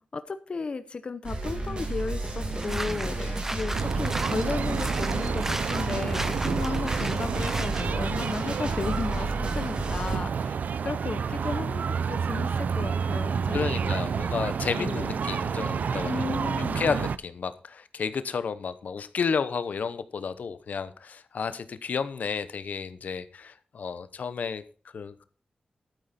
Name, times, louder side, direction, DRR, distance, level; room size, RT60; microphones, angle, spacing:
voice 1, 0.0-10.5 10.8-13.9 14.8-15.2 16.1-16.8, left 4 dB, 40° left, 11 dB, 0.7 m, -34 dB
sound 1, 1.2-10.2, right 2 dB, 35° right, 2.4 m, -32 dB
sound 2, 2.4-7.9, right 1 dB, 15° right, 0.8 m, -36 dB
sound 3, 3.7-17.2, right 6 dB, 80° right, 0.5 m, -29 dB
voice 2, 13.5-16.2 16.4-24.6 24.9-25.3, left 6 dB, 75° left, 12 dB, 0.9 m, -32 dB
12.5 x 9.0 x 4.2 m, 0.39 s
wide cardioid pair, 170°, 3 cm